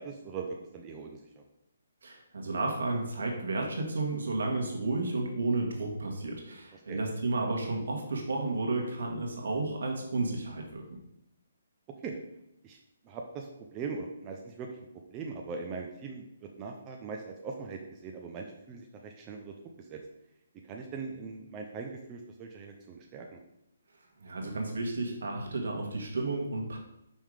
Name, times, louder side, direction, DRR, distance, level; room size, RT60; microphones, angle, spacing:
voice 1, 0.0-1.4 6.7-7.0 12.0-12.2 12.6-12.8 13.0-20.0 20.6-23.4, right 4 dB, 20° right, 1 dB, 0.5 m, -41 dB
voice 2, 2.0-10.8 24.2-26.8, right 2 dB, 75° right, 1 dB, 1.6 m, -32 dB
5.6 x 3.5 x 4.8 m, 0.84 s
hypercardioid pair, 155°, 0 cm